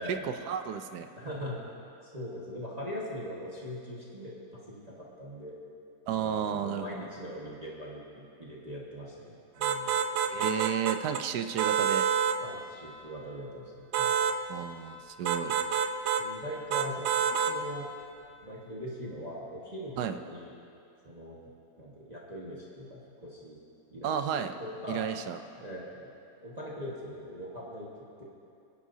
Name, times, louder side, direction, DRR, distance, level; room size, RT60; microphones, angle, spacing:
voice 1, 0.0-1.1 6.1-7.0 10.3-12.1 14.5-15.5 20.0-20.2 24.0-24.5 24.9-25.4, right 8 dB, 85° right, 8 dB, 1.2 m, -32 dB
voice 2, 1.1-1.6 2.0-5.6 6.1-9.9 12.4-14.2 15.5-15.7 16.2-17.9 18.4-20.5 21.0-21.4 21.8-23.6 23.9-24.2 24.6-25.1 25.6-26.0 26.4-27.9 28.2-28.3, equal, 25° right, -6 dB, 1.6 m, -41 dB
sound 1, 9.6-11.2 11.6-12.4 13.9-14.4 15.3-16.3 16.7-17.6, right 7 dB, 65° right, 0.6 m, -28 dB
27.0 x 10.0 x 2.8 m, 2.6 s
omnidirectional pair, 1.7 m